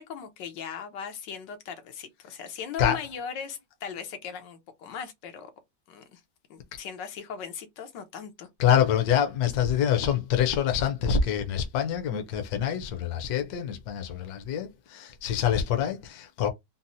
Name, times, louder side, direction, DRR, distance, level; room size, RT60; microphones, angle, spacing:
voice 1, 0.0-5.5 5.9-6.2 6.5-8.5, left 7 dB, 85° left, 1.4 m, -38 dB
voice 2, 8.6-16.5, left 8 dB, 65° left, 1.1 m, -26 dB
4.0 x 2.0 x 2.6 m
omnidirectional pair, 1.9 m